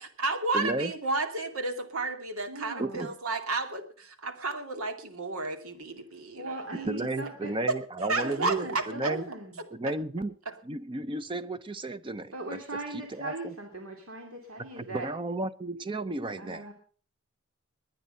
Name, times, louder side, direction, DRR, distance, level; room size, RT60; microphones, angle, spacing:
voice 1, 0.0-7.1 8.0-9.1 10.5-10.6, right 3 dB, 90° right, 2.4 m, -32 dB
voice 2, 0.5-0.9 2.8-3.1 6.7-8.7 8.9-9.2 9.7-10.3 10.7-13.5 14.6-16.7, right 2 dB, 25° right, 0.6 m, -33 dB
voice 3, 2.5-3.1 6.3-7.5 8.2-9.5 12.3-15.1 16.4-16.7, right 2 dB, 70° right, 2.7 m, -39 dB
21.5 x 9.3 x 5.5 m
head